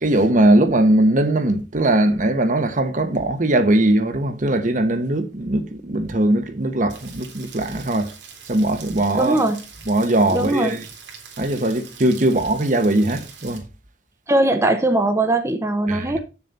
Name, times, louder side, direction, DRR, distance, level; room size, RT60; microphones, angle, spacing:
voice 1, 0.0-8.1 8.5-9.4 9.9-10.9 11.4-13.6 15.9-16.2, right 1 dB, 45° right, 1.1 m, -20 dB
Rain, 6.9-13.6, right 6 dB, 70° right, 2.9 m, -43 dB
voice 2, 9.2-9.6 10.3-10.8 14.3-16.2, right 1 dB, 15° right, 0.8 m, -20 dB
8.4 x 7.1 x 4.2 m
head